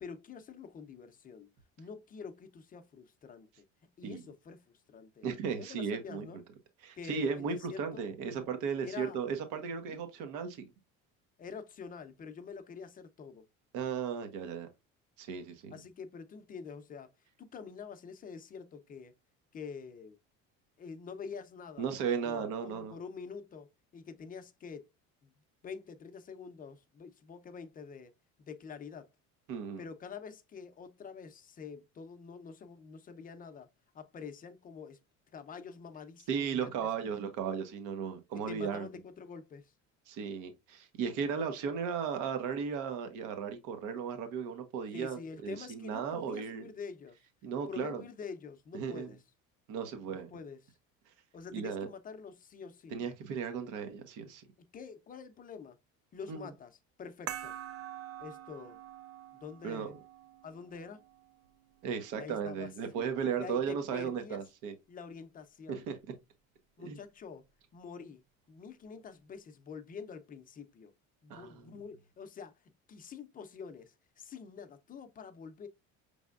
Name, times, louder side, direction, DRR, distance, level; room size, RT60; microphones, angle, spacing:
voice 1, 0.0-1.5 1.8-3.7 4.0-5.3 5.6-6.4 6.9-8.1 8.8-9.2 9.8-10.0 11.4-13.4 15.7-17.1 17.4-19.1 19.5-20.2 20.8-21.9 22.2-24.9 25.2-25.3 25.6-28.1 28.4-29.1 29.8-33.7 33.9-35.0 35.3-36.7 38.5-39.7 44.9-47.2 47.7-49.2 50.1-50.7 51.3-52.9 54.6-55.8 56.1-57.5 58.2-58.8 59.3-59.9 60.4-61.0 62.2-62.7 63.0-64.4 64.9-65.9 66.8-67.4 67.7-68.2 68.5-70.9 71.2-72.5 72.9-75.7, left 6 dB, 25° left, 0.6 m, -46 dB
voice 2, 5.2-6.3 6.8-10.7 13.7-14.7 15.2-15.8 21.8-23.0 29.5-29.8 36.3-38.9 40.1-46.7 47.4-48.0 48.7-49.1 49.7-50.3 51.5-51.9 52.9-54.4 56.3-56.5 59.6-59.9 61.8-64.7 65.7-66.0 66.8-67.0 71.3-71.7, right 6 dB, 70° right, 1.1 m, -36 dB
sound 1, 57.3-62.3, right 11 dB, 50° right, 0.6 m, -46 dB
5.3 x 3.3 x 2.4 m
cardioid pair, 130°, 32 cm